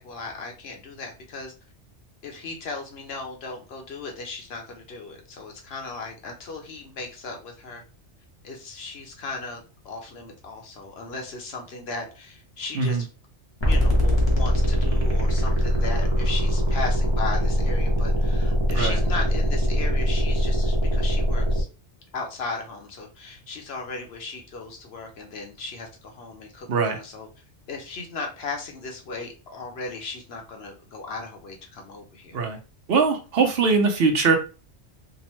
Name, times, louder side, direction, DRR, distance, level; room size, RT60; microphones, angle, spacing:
voice 1, 0.0-1.5 2.2-7.8 8.4-13.0 13.6-21.7 22.1-27.3 27.7-32.4, left 3 dB, 65° left, 2 dB, 0.9 m, -36 dB
sound 1, 13.6-21.6, equal, 30° left, 0.5 m, -22 dB
voice 2, 32.9-34.4, right 4 dB, 60° right, 3 dB, 0.8 m, -21 dB
2.8 x 2.0 x 3.0 m, 0.33 s
omnidirectional pair, 1.2 m